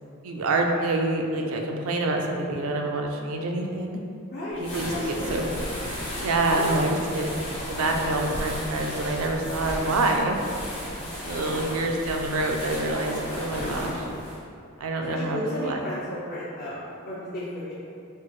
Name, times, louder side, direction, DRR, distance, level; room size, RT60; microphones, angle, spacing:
voice 1, 0.2-4.0 4.6-5.4 6.2-7.3 7.7-10.4 11.0-14.1 14.8-15.8, right 2 dB, 75° right, 2 dB, 0.4 m, -27 dB
voice 2, 4.3-4.7 4.9-5.6 15.2-17.7, equal, 45° left, -10 dB, 0.5 m, -34 dB
sound 1, 4.6-14.4, left 1 dB, 80° left, 1.4 m, -34 dB
4.2 x 2.0 x 3.1 m, 2.5 s
head